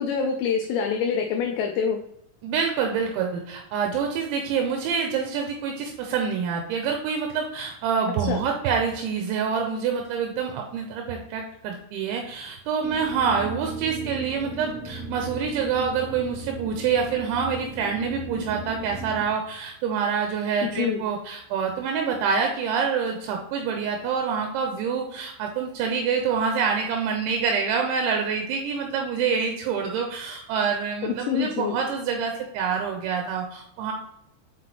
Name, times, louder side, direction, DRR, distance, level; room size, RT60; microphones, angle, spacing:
voice 1, 0.0-2.0 8.3-8.4 20.6-21.0 31.0-31.7, left 6 dB, 85° left, 3 dB, 2.5 m, -26 dB
voice 2, 2.4-33.9, right 6 dB, 80° right, 3 dB, 2.9 m, -26 dB
sound 1, 12.8-19.3, right 3 dB, 20° right, 0.4 m, -37 dB
7.4 x 6.0 x 3.1 m, 0.74 s
omnidirectional pair, 5.8 m